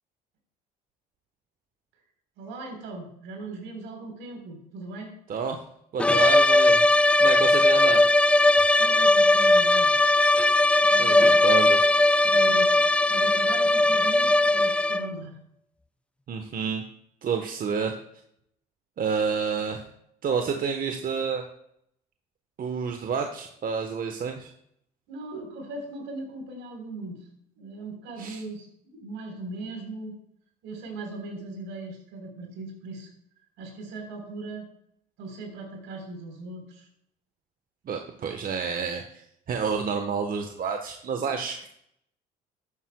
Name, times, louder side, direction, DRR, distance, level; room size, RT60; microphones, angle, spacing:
voice 1, 2.4-5.1 8.8-9.9 10.9-11.7 12.2-12.7 13.1-15.4 25.1-27.3 27.6-30.1 30.6-33.1 33.6-34.7 35.2-36.9, right 2 dB, 70° right, 2 dB, 3.8 m, -38 dB
voice 2, 5.3-5.6 5.9-6.9 7.2-8.1 11.0-11.8 16.3-16.8 17.2-17.9 19.0-19.8 20.2-21.4 22.6-24.5 28.2-28.4 37.9-41.7, right 6 dB, 45° right, 5 dB, 1.1 m, -29 dB
sound 1, 6.0-15.2, left 2 dB, 5° left, 0.3 m, -19 dB
12.5 x 9.6 x 2.2 m, 0.72 s
supercardioid pair, 70°, 20 cm